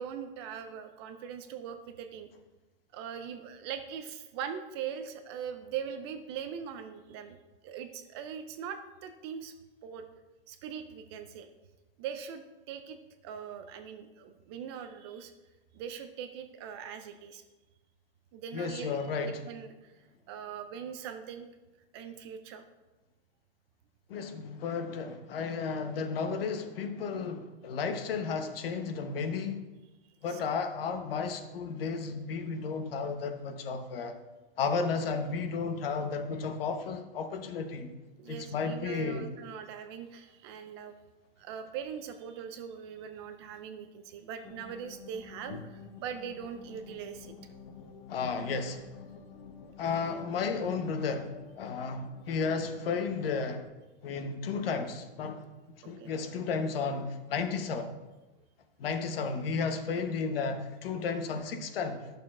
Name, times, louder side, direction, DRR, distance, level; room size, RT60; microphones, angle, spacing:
voice 1, 0.0-2.3 2.9-7.4 7.6-9.5 9.8-10.1 10.5-11.5 12.0-15.3 15.7-17.4 18.3-19.9 20.3-21.5 21.9-22.6 30.3-30.4 38.2-40.9 41.4-47.3 55.8-56.1, right 8 dB, 30° right, 0.4 m, -41 dB
voice 2, 18.5-19.4 24.1-29.6 30.2-34.1 34.6-37.9 38.3-39.3 45.5-45.6 48.1-48.9 49.8-53.6 54.0-55.4 55.8-57.9 58.8-62.1, left 5 dB, 70° left, 1.0 m, -33 dB
sound 1, 44.4-53.7, left 5 dB, 45° left, 0.8 m, -51 dB
11.5 x 6.6 x 2.4 m
hypercardioid pair, 150°, 30 cm